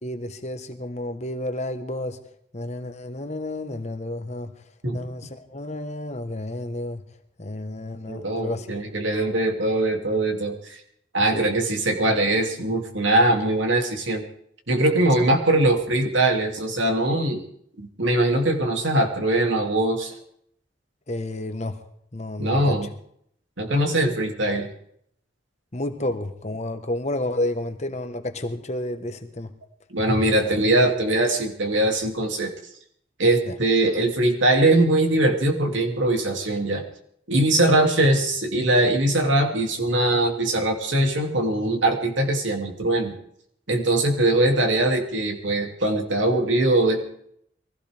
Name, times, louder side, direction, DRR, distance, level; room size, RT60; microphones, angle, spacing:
voice 1, 0.0-2.2 2.5-4.5 4.9-7.0 7.4-8.7 11.3-11.4 21.1-21.8 22.1-22.8 25.7-29.5 33.4-33.6, left 1 dB, 35° left, 1.2 m, -30 dB
voice 2, 8.1-10.8 11.1-14.2 14.7-17.4 17.8-20.1 22.4-22.9 23.6-24.7 29.9-32.5 33.2-36.8 37.3-43.1 43.7-47.0, right 1 dB, 85° right, 2.7 m, -21 dB
23.0 x 16.0 x 3.5 m
head